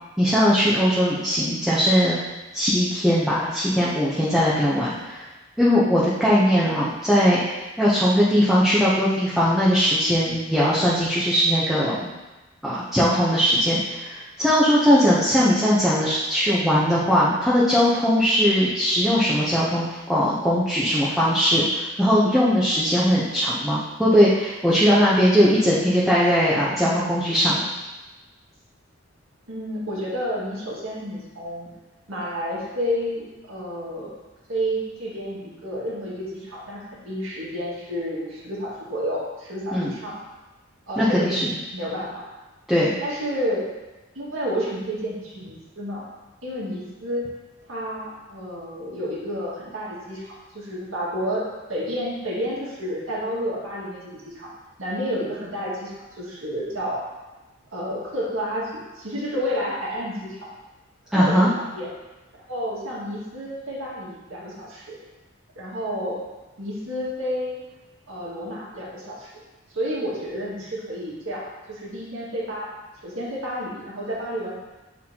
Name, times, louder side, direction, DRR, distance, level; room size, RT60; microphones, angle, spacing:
voice 1, 0.2-2.2 2.5-5.2 5.6-12.1 12.6-27.7 39.7-39.9 41.0-41.5 42.7-43.0 61.1-61.5, equal, ahead, -9 dB, 0.7 m, -20 dB
voice 2, 29.5-31.7 32.1-34.1 34.5-40.2 40.9-41.5 41.7-42.2 43.0-43.7 44.2-46.0 46.4-47.3 47.7-54.5 54.8-57.0 57.7-60.5 61.1-61.9 62.5-65.0 65.6-66.2 66.6-67.6 68.1-69.4 69.7-72.7 73.0-74.5, equal, 85° right, -5 dB, 1.9 m, -30 dB
8.1 x 4.3 x 2.9 m, 1.1 s
head